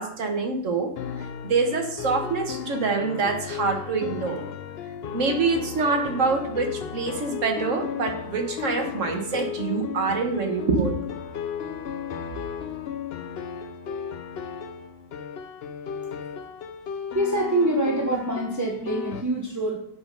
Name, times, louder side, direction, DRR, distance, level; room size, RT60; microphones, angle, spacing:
voice 1, 0.0-4.5 5.1-11.1, right 4 dB, 50° right, 3 dB, 1.5 m, -26 dB
sound 1, 1.0-19.2, left 7 dB, 90° left, 0.5 m, -35 dB
voice 2, 17.1-19.8, right 1 dB, 15° right, -2 dB, 0.6 m, -25 dB
7.7 x 5.5 x 5.2 m, 0.66 s
omnidirectional pair, 1.8 m